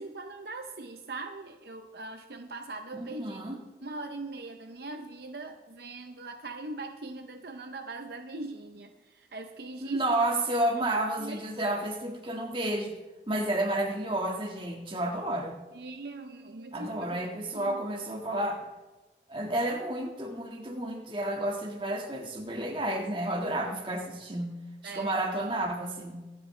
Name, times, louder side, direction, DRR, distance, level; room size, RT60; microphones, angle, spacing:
voice 1, 0.0-3.4 3.8-10.0 11.2-11.4 15.7-16.9 17.5-17.8 24.8-25.1, right 2 dB, 60° right, 6 dB, 0.7 m, -40 dB
voice 2, 3.0-3.6 9.8-13.0 13.3-15.5 16.7-18.7 19.3-24.5 24.8-26.3, right 1 dB, 30° right, 1 dB, 1.7 m, -31 dB
24.5 x 9.2 x 3.3 m, 1.2 s
head